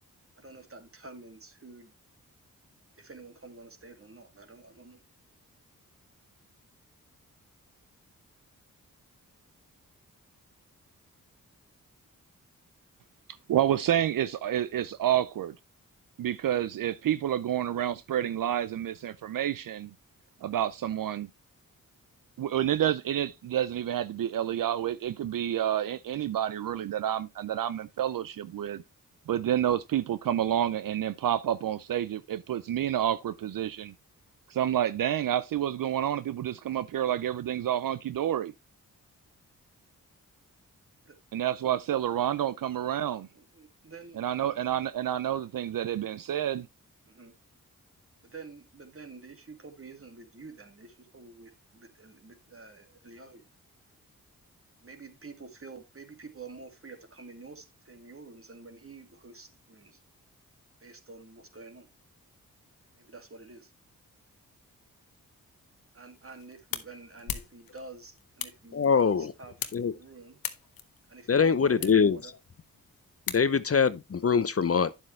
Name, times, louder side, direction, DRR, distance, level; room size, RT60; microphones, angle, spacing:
voice 1, 0.4-1.9 3.0-5.0 41.1-41.2 43.3-44.2 47.0-47.3 48.2-53.4 54.8-60.0 60.8-61.9 63.0-63.7 65.9-70.4 71.1-72.3, right 3 dB, 40° right, 2.4 m, -48 dB
voice 2, 13.5-15.6 16.2-19.9 20.4-21.3 22.4-28.8 29.3-33.9 34.5-38.5 41.3-43.3 44.2-46.7, right 11 dB, 70° right, 0.6 m, -29 dB
sound 1, 66.1-73.9, left 8 dB, 80° left, 1.1 m, -42 dB
voice 3, 68.7-69.3 69.7-69.9 71.3-72.2 73.3-74.9, left 6 dB, 40° left, 0.7 m, -23 dB
9.9 x 7.5 x 3.2 m
cardioid pair, 45°, 34 cm